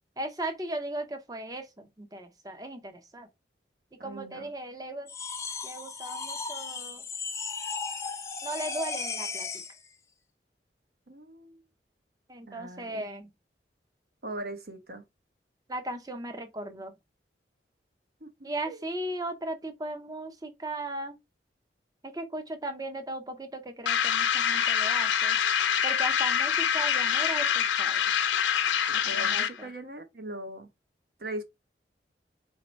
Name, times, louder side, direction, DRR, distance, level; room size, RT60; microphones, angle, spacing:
voice 1, 0.2-3.3 4.0-5.1 5.6-7.0 8.4-9.5 12.3-13.3 15.7-16.9 18.4-21.2 22.0-25.4 25.8-28.0 29.0-29.7, right 1 dB, 20° right, 0.7 m, -37 dB
voice 2, 4.0-4.5 11.1-11.6 12.5-13.1 14.2-15.0 18.2-18.8 28.9-30.7 31.2-31.4, right 1 dB, 55° right, 1.0 m, -40 dB
sound 1, 5.1-9.8, left 4 dB, 15° left, 0.4 m, -36 dB
sound 2, 23.9-29.6, left 8 dB, 90° left, 0.7 m, -25 dB
4.2 x 2.8 x 4.5 m
head